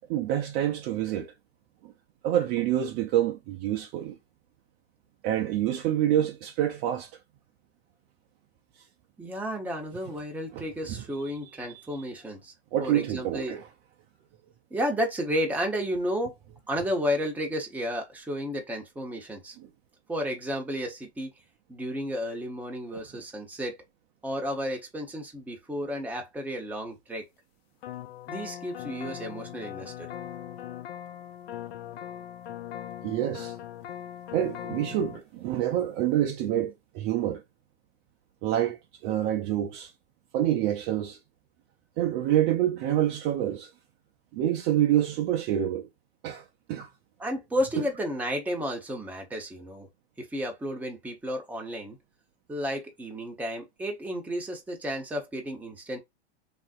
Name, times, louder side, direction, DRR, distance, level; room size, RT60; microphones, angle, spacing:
voice 1, 0.1-1.3 1.8-1.9 2.2-4.2 5.2-7.2 8.8-8.9 10.5-11.0 12.7-13.7 19.6-19.7 22.9-23.0 33.0-33.5 34.3-37.4 38.4-39.9 40.3-41.2 42.0-43.7 44.3-45.8 46.2-46.9, right 11 dB, 35° right, 0.5 m, -27 dB
voice 2, 9.2-12.5 12.8-13.6 14.7-16.4 16.7-19.6 20.1-21.3 21.7-23.8 24.2-27.3 28.3-30.1 47.2-49.9 50.2-52.0 52.5-56.0, equal, 5° right, 0.8 m, -32 dB
sound 1, 27.8-35.2, left 11 dB, 70° left, 0.6 m, -40 dB
3.3 x 2.6 x 2.4 m
hypercardioid pair, 125°, 32 cm